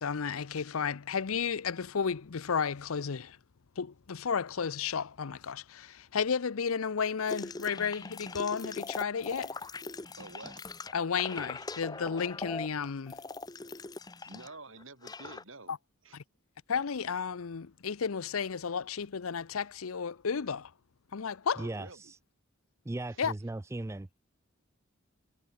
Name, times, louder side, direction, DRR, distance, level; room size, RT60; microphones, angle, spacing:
voice 1, 0.0-3.4 3.8-9.6 10.9-13.2 15.7-15.8 16.1-16.2 16.7-20.7 21.1-21.7 23.2-23.3, left 6 dB, 85° left, 0.6 m, -33 dB
sound 1, 7.3-14.5 14.8-15.4, left 3 dB, 20° left, 0.8 m, -41 dB
voice 2, 10.2-10.6 14.3-15.7 16.0-16.2 21.6-22.1 23.1-23.3, right 2 dB, 70° right, 7.2 m, -49 dB
voice 3, 21.6-22.2 22.9-24.3, right 2 dB, 15° right, 0.3 m, -38 dB
head